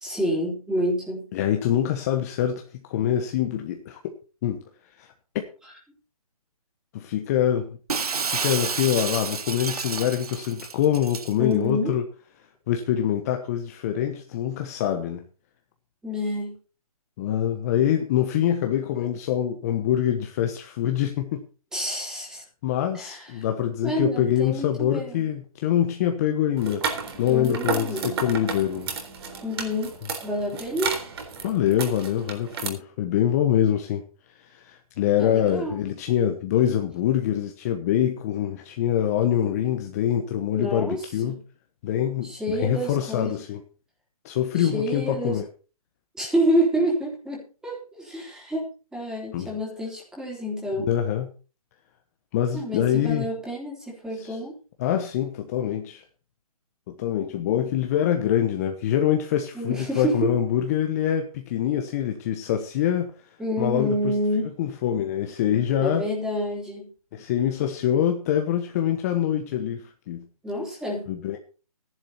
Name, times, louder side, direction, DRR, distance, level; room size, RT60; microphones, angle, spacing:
voice 1, 0.0-1.3 11.4-11.9 16.0-16.6 21.7-22.4 22.9-23.5 23.8-25.2 27.3-28.2 29.4-30.0 30.2-31.0 35.2-35.8 40.5-41.4 42.2-43.4 44.6-45.4 46.2-50.9 52.5-54.6 59.5-60.3 63.4-64.5 65.8-66.9 70.4-71.1, equal, 5° right, -2 dB, 3.5 m, -28 dB
voice 2, 1.3-4.1 4.4-4.6 5.0-5.4 6.9-7.8 8.3-12.0 12.7-15.2 17.2-21.4 22.6-26.9 27.2-28.9 31.4-34.0 34.4-41.4 41.8-43.6 44.2-45.4 49.3-49.5 50.8-51.3 52.3-53.3 54.2-54.4 54.8-56.0 56.9-63.1 63.6-64.2 64.6-66.1 67.1-70.3 71.1-71.4, left 10 dB, 25° left, 5 dB, 1.1 m, -25 dB
Shatter, 7.9-11.3, right 5 dB, 75° right, 1.4 m, -30 dB
sound 1, 26.6-32.7, right 5 dB, 40° right, 3.8 m, -32 dB
14.0 x 11.0 x 4.2 m, 0.35 s
hypercardioid pair, 155°, 19 cm